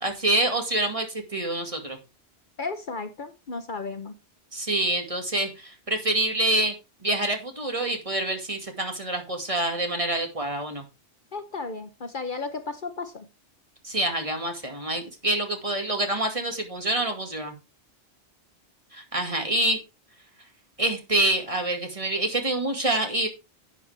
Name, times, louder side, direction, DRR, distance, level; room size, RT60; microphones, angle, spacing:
voice 1, 0.0-2.0 4.5-6.7 7.0-10.8 13.8-17.5 18.9-19.8 20.8-23.3, right 1 dB, 30° right, 4 dB, 2.1 m, -26 dB
voice 2, 2.6-4.1 11.3-13.3, left 4 dB, 50° left, 9 dB, 1.0 m, -34 dB
11.5 x 8.3 x 3.4 m, 0.27 s
omnidirectional pair, 1.1 m